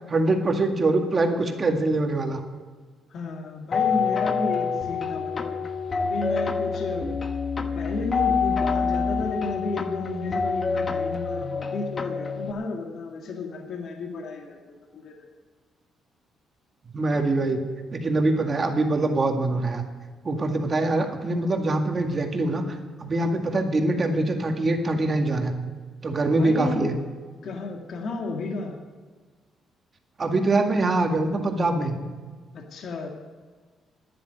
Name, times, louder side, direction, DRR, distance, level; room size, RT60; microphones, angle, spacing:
voice 1, 0.1-2.4 16.9-17.6 17.9-19.8 20.2-22.6 23.0-25.6 26.0-26.9 30.2-32.0, right 2 dB, 35° right, 4 dB, 2.0 m, -23 dB
voice 2, 3.1-7.2 7.6-15.3 26.3-26.9 27.4-28.8 32.5-33.1, left 3 dB, 65° left, 2 dB, 2.0 m, -33 dB
sound 1, 3.7-12.5, left 5 dB, 40° left, 1.2 m, -27 dB
10.5 x 10.5 x 9.3 m, 1.5 s
cardioid pair, 90°, 0 cm